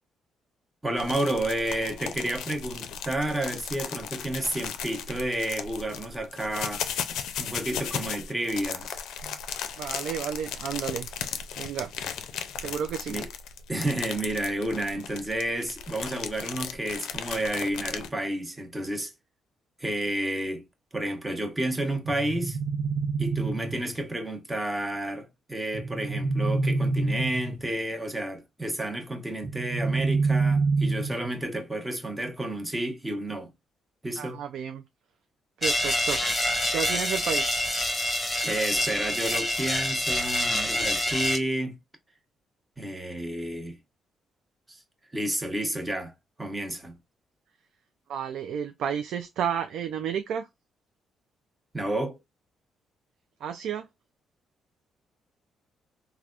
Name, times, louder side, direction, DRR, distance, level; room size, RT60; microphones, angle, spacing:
voice 1, 0.8-6.8 7.4-9.0 9.2-9.4 13.1-13.3 13.7-19.1 19.8-20.6 20.9-22.6 23.2-33.5 34.0-34.4 38.4-41.8 42.8-43.8 44.7-44.8 45.1-46.1 46.4-47.0 51.7-52.2, right 1 dB, 15° right, 0.9 m, -31 dB
sound 1, 1.0-18.1, left 8 dB, 85° left, 0.4 m, -36 dB
voice 2, 9.8-11.1 11.6-11.9 12.6-13.2 34.2-34.8 35.6-36.2 36.7-37.6 48.1-50.5 53.4-53.9, right 8 dB, 75° right, 0.3 m, -31 dB
sound 2, 22.0-24.1 25.7-27.8 29.4-31.4, right 3 dB, 50° right, 0.9 m, -27 dB
sound 3, 35.6-41.4, left 1 dB, 15° left, 1.2 m, -27 dB
3.3 x 2.2 x 2.4 m
cardioid pair, 90°, 0 cm